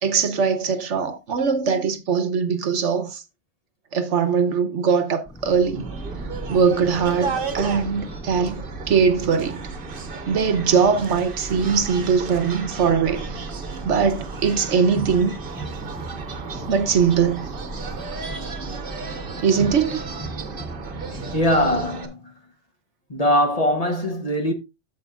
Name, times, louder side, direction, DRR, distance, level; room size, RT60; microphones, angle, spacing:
voice 1, 0.0-3.2 3.9-5.9 6.5-9.6 10.3-13.5 13.8-15.3 16.5-17.5 19.4-20.0, right 6 dB, 70° right, 1.2 m, -21 dB
sound 1, 5.3-21.9, right 2 dB, 5° left, 0.6 m, -37 dB
sound 2, 5.7-22.1, right 5 dB, 50° right, 1.1 m, -34 dB
voice 2, 21.3-22.3 23.1-24.5, left 1 dB, 35° left, 1.0 m, -21 dB
14.5 x 4.9 x 2.4 m
omnidirectional pair, 1.3 m